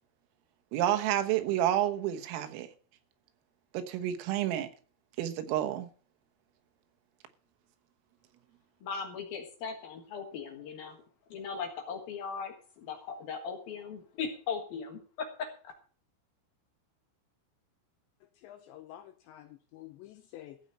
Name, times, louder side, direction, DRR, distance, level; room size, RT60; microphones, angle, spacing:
voice 1, 0.7-2.7 3.7-4.7 5.2-5.9, right 12 dB, 85° right, 3.9 m, -29 dB
voice 2, 8.8-11.0 11.3-15.7, left 5 dB, 60° left, 2.8 m, -38 dB
voice 3, 18.2-20.6, left 13 dB, 80° left, 2.7 m, -50 dB
15.0 x 5.5 x 8.3 m
omnidirectional pair, 5.9 m